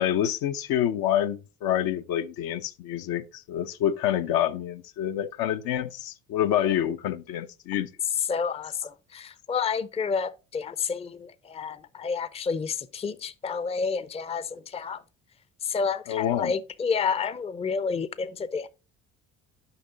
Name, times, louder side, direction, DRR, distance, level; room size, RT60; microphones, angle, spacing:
voice 1, 0.0-7.9 16.1-16.5, left 11 dB, 65° left, 0.7 m, -27 dB
voice 2, 8.1-15.0 15.6-18.7, left 5 dB, 15° left, 0.5 m, -30 dB
7.0 x 5.3 x 3.7 m
hypercardioid pair, 55°, 39 cm